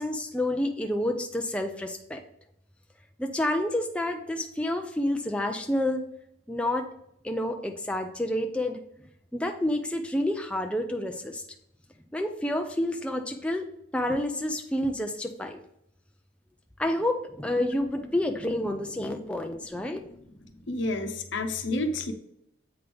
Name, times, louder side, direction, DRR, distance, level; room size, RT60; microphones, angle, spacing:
voice 1, 0.0-2.2 3.2-6.1 6.5-6.9 7.2-8.8 9.3-11.5 12.1-13.7 13.9-15.6 16.8-20.1, left 1 dB, 5° left, 4 dB, 0.4 m, -29 dB
voice 2, 20.7-22.1, left 2 dB, 70° left, 6 dB, 0.8 m, -29 dB
8.0 x 5.2 x 3.4 m, 0.76 s
head